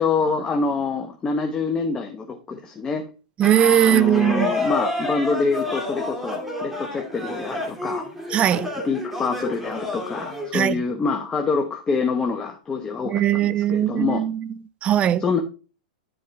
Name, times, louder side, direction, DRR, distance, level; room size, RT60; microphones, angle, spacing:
voice 1, 0.0-3.0 3.8-8.0 8.8-14.2 15.2-15.4, left 4 dB, 20° left, 1.0 m, -26 dB
sound 1, 3.4-10.5, left 2 dB, ahead, 2.4 m, -29 dB
voice 2, 3.4-4.5 8.3-8.7 10.5-10.8 13.1-14.5 14.8-15.3, right 11 dB, 25° right, 0.4 m, -20 dB
10.0 x 4.8 x 3.5 m
hypercardioid pair, 130°, 4 cm